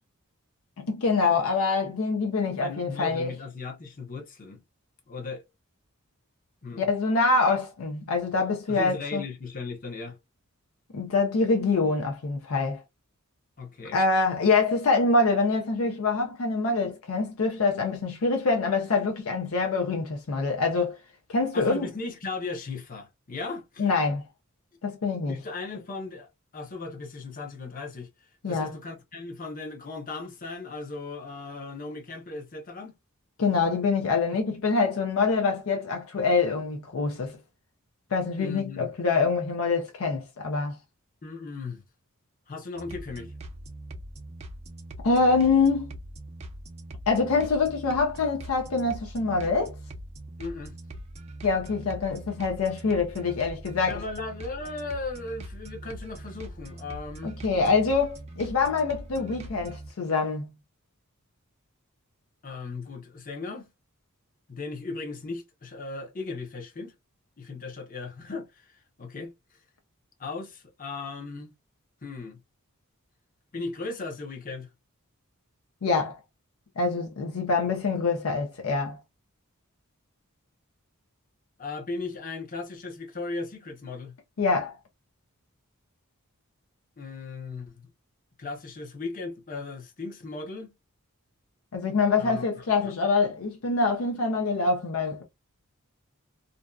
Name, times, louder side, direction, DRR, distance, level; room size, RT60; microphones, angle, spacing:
voice 1, 0.8-3.3 6.8-9.2 10.9-12.8 13.9-21.0 21.3-21.9 23.8-24.2 24.8-25.4 28.4-28.8 33.4-37.4 38.1-40.8 45.0-45.9 47.1-49.7 51.4-54.0 57.2-60.5 75.8-76.2 76.8-79.0 84.4-84.7 91.7-95.2, left 4 dB, 70° left, 0.5 m, -25 dB
voice 2, 2.6-4.6 5.1-5.4 6.6-6.9 8.7-10.2 13.6-14.0 21.5-23.9 25.3-28.1 28.5-32.9 38.4-38.9 41.2-41.8 42.5-43.3 50.4-50.8 53.9-57.3 62.4-63.7 64.5-66.9 67.4-69.3 70.2-71.5 72.0-72.4 73.5-74.7 81.6-84.1 87.0-87.9 88.4-90.7 92.2-92.4 92.8-92.9, left 3 dB, 40° left, 0.8 m, -37 dB
sound 1, 42.7-59.9, right 1 dB, 30° right, 0.5 m, -42 dB
2.6 x 2.3 x 2.2 m
head